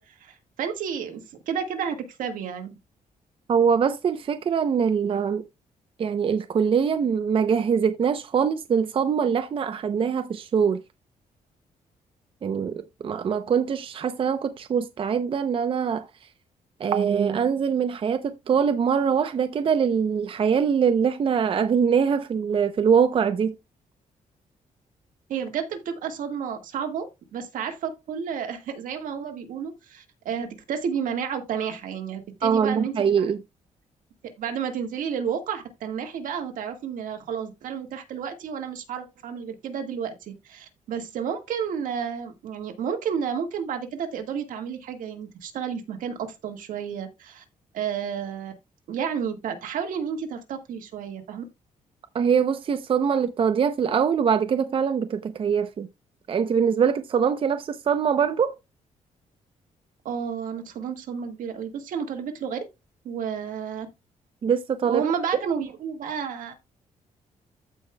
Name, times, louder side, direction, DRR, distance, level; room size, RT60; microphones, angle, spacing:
voice 1, 0.0-2.7 25.3-33.3 34.4-46.2 46.4-47.4 47.7-48.5 48.9-51.4 60.0-62.6 63.0-63.9 64.8-66.5, right 7 dB, 80° right, 1.7 m, -31 dB
voice 2, 3.5-5.5 6.0-10.8 12.4-16.1 16.8-23.5 32.4-33.4 52.1-55.9 56.3-58.5 64.4-65.0, right 7 dB, 40° right, 0.6 m, -23 dB
14.5 x 5.0 x 2.2 m
cardioid pair, 130°, 14 cm